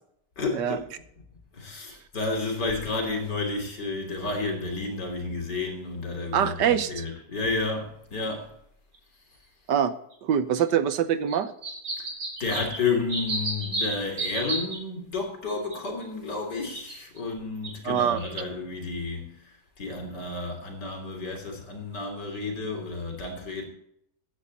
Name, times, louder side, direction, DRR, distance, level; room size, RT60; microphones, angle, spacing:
voice 1, 0.4-0.9 1.5-8.5 12.0-12.1 12.4-23.6, left 3 dB, 80° left, 3.7 m, -31 dB
voice 2, 6.3-7.0 9.7-9.9 10.2-11.5 17.8-18.3, right 8 dB, 80° right, 1.6 m, -24 dB
sound 1, 7.4-7.5 8.9-9.0 10.1-10.2 10.6-10.7 11.3-14.8 15.7-16.0 16.6-17.2 17.6-17.7, right 2 dB, 60° right, 4.0 m, -32 dB
16.0 x 9.7 x 4.1 m
omnidirectional pair, 1.8 m